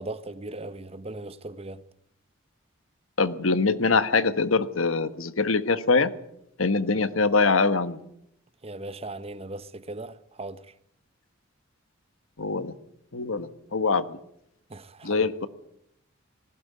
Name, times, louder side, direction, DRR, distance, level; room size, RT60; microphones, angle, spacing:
voice 1, 0.0-1.8 8.6-10.7 14.7-15.3, right 2 dB, 30° right, 0.9 m, -38 dB
voice 2, 3.2-6.1 6.6-8.0 12.4-12.7 13.1-14.2 15.0-15.5, left 4 dB, 70° left, 1.3 m, -23 dB
19.5 x 16.0 x 9.5 m
head